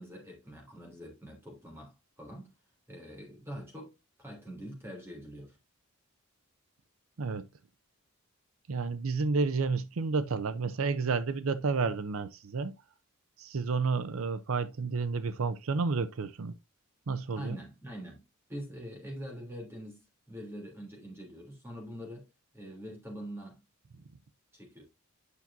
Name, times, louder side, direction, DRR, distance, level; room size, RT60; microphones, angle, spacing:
voice 1, 0.0-2.5 2.9-5.6 17.3-18.2 18.5-22.3 22.5-23.6 23.9-24.0 24.5-24.8, equal, 10° right, 3.2 m, -44 dB
voice 2, 8.7-12.7 13.4-16.5 17.1-17.6, right 4 dB, 75° right, 0.6 m, -31 dB
9.7 x 5.9 x 2.6 m
head